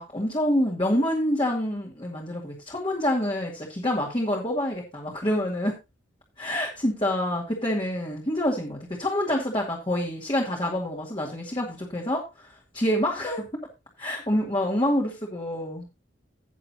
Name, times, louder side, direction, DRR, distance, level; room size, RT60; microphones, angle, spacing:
voice 1, 0.0-5.8 6.4-13.7 14.0-15.9, left 1 dB, 25° left, -2 dB, 2.3 m, -27 dB
17.0 x 6.8 x 2.8 m, 0.25 s
head